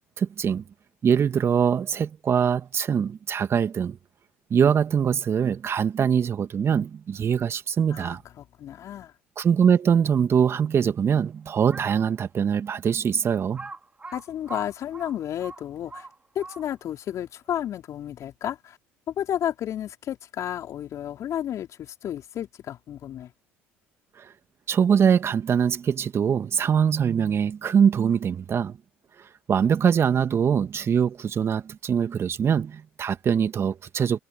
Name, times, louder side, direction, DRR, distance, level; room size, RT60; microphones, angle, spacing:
voice 1, 0.2-0.6 1.0-4.0 4.5-8.2 9.4-13.7 24.2-24.3 24.7-28.8 29.5-34.2, right 7 dB, 40° right, 2.2 m, -23 dB
voice 2, 7.9-9.1 14.1-16.1 16.3-18.8 19.2-23.3, left 10 dB, 55° left, 4.4 m, -32 dB
Crow, 11.7-12.1 12.7-12.8 13.5-16.9, right 3 dB, 20° right, 4.5 m, -41 dB
hypercardioid pair, 65°, 6 cm